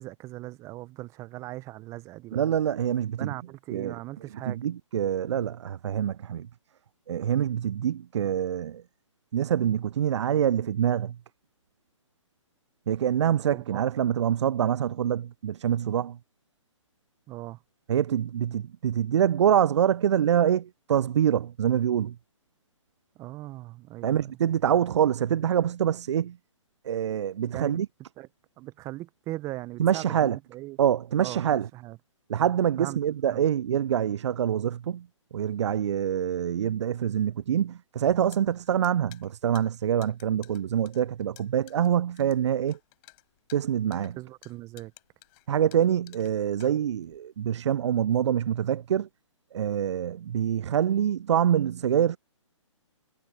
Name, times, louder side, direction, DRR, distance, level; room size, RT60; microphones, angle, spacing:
voice 1, 0.0-2.4 3.2-4.6 13.5-13.8 17.3-17.6 23.2-24.3 27.5-27.8 28.2-28.3 28.6-30.8 31.2-32.0 32.8-33.0 33.3-33.4 44.1-44.9, right 18 dB, 20° right, 0.7 m, -39 dB
voice 2, 2.3-3.3 3.7-4.0 4.5-6.5 7.1-8.8 9.3-11.2 12.9-16.2 17.9-22.2 24.0-26.4 26.8-27.9 29.8-30.4 30.8-31.7 32.3-35.1 35.3-42.8 43.5-44.2 45.5-49.1 49.5-52.2, right 9 dB, 65° right, 0.4 m, -25 dB
sound 1, 38.0-47.2, left 40 dB or more, 30° left, 6.0 m, -54 dB
figure-of-eight pair, 135°, 16 cm